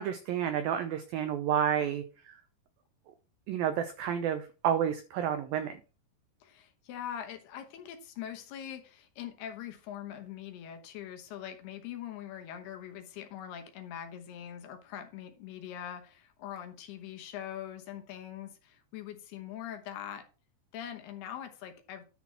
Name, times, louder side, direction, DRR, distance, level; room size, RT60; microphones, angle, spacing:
voice 1, 0.0-2.4 3.5-5.8, right 9 dB, 85° right, 8 dB, 2.0 m, -30 dB
voice 2, 6.4-20.3 20.7-22.0, left 10 dB, 75° left, 5 dB, 2.9 m, -42 dB
10.5 x 4.2 x 5.8 m, 0.33 s
omnidirectional pair, 5.1 m